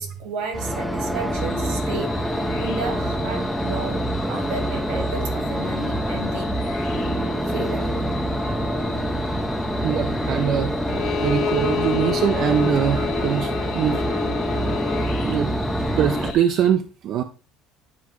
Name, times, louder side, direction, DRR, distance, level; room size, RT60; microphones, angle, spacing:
voice 1, 0.0-4.0 4.3-6.6 7.5-8.0, right 4 dB, 85° right, 5 dB, 1.9 m, -33 dB
sound 1, 0.5-16.3, equal, ahead, 0.6 m, -25 dB
sound 2, 1.3-16.7, left 7 dB, 70° left, 1.1 m, -41 dB
voice 2, 9.8-14.2 15.2-15.5 16.0-17.2, right 9 dB, 50° right, 7 dB, 0.5 m, -23 dB
Bowed string instrument, 10.9-15.1, left 9 dB, 50° left, 0.4 m, -29 dB
9.6 x 4.7 x 3.0 m, 0.34 s
cardioid pair, 145°, 0 cm